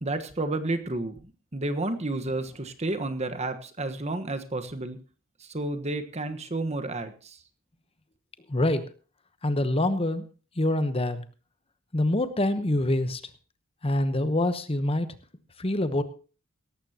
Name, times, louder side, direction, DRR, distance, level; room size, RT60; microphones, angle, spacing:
voice 1, 0.0-5.0 5.4-7.4, right 2 dB, 30° right, 8 dB, 1.3 m, -31 dB
voice 2, 8.5-8.8 9.4-10.2 10.6-11.2 11.9-13.2 13.8-15.1 15.6-16.0, left 1 dB, 25° left, 11 dB, 1.0 m, -25 dB
18.0 x 14.5 x 2.9 m, 0.36 s
head